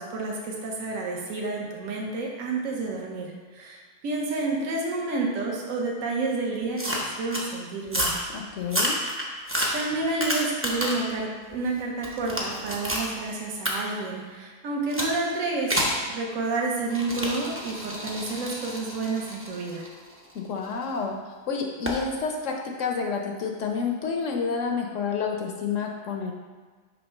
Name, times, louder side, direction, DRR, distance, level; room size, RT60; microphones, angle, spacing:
voice 1, 0.0-8.1 9.7-19.8, right 3 dB, 60° right, -1 dB, 1.3 m, -30 dB
sound 1, 6.8-7.5 7.9-8.2 8.6-11.1 11.5-13.1 13.6-13.7 14.9-15.1 15.7-16.0 16.9-20.8 21.8-22.0, equal, 15° right, 0.4 m, -29 dB
voice 2, 8.3-9.0 20.3-21.1 21.5-26.3, left 5 dB, 65° left, 1 dB, 0.9 m, -29 dB
5.9 x 3.3 x 5.4 m, 1.4 s
omnidirectional pair, 1.6 m